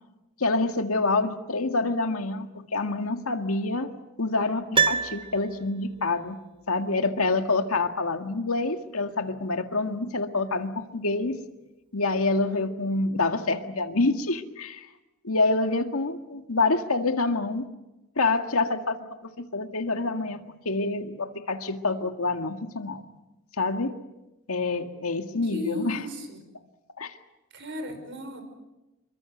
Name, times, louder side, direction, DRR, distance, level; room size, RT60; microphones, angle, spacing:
voice 1, 0.4-3.9 4.2-6.4 6.7-11.4 11.9-14.9 15.2-17.7 18.2-23.0 23.6-24.0 24.5-26.0 27.0-27.2, left 3 dB, 75° left, 6 dB, 1.9 m, -27 dB
Piano, 4.7-6.0 6.3-6.4, right 6 dB, 25° right, 0.9 m, -26 dB
voice 2, 25.5-26.4 27.5-28.4, left 1 dB, 55° right, 8 dB, 5.2 m, -35 dB
27.5 x 23.5 x 8.0 m, 1.0 s
head